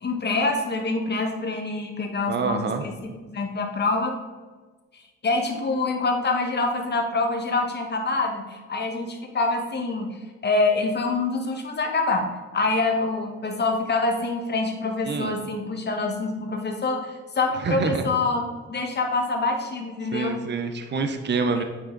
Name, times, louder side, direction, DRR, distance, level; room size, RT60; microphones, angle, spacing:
voice 1, 0.0-4.2 4.9-18.4 18.7-20.4, left 3 dB, 35° left, 3 dB, 1.4 m, -26 dB
voice 2, 2.3-2.8 15.1-15.3 17.6-18.0 20.1-21.6, right 4 dB, 35° right, 7 dB, 0.8 m, -26 dB
8.8 x 4.7 x 3.9 m, 1.3 s
cardioid pair, 90°, 30 cm